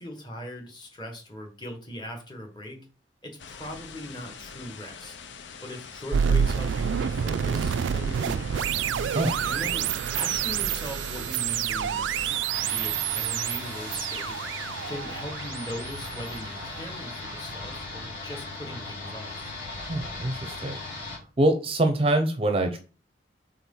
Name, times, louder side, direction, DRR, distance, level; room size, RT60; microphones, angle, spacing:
voice 1, 0.0-2.9 3.2-5.2 5.6-8.8 9.4-19.4, equal, 25° left, 3 dB, 1.4 m, -40 dB
sound 1, 3.4-12.4, left 5 dB, 85° left, 0.7 m, -43 dB
sound 2, 6.1-17.1, right 8 dB, 90° right, 0.3 m, -28 dB
sound 3, 12.5-21.2, left 3 dB, 45° left, 2.1 m, -38 dB
voice 2, 19.8-20.8 21.4-22.8, right 1 dB, 30° right, 6 dB, 0.6 m, -24 dB
4.5 x 3.8 x 5.5 m, 0.35 s
head